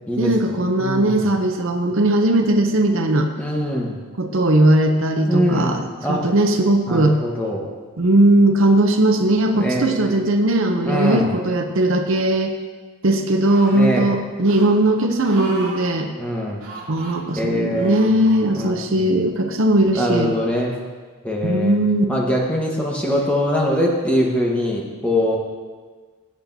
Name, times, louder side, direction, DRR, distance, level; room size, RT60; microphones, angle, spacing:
voice 1, 0.2-3.3 4.2-7.2 8.0-12.5 13.0-16.1 16.9-20.3 21.4-22.0, right 1 dB, 60° right, 5 dB, 0.7 m, -18 dB
voice 2, 0.8-1.3 3.4-4.0 5.3-6.2 6.9-7.7 9.5-9.9 10.8-11.3 13.7-14.1 16.2-16.6 17.4-18.2 18.5-19.2 19.9-20.8 21.2-21.8 22.1-25.4, equal, 5° left, -3 dB, 1.3 m, -22 dB
sound 1, 13.4-13.9 14.5-14.7 15.2-15.8 16.6-17.2 17.8-18.4 19.2-19.3, right 2 dB, 80° right, 2.6 m, -36 dB
16.5 x 8.2 x 2.7 m, 1.5 s
head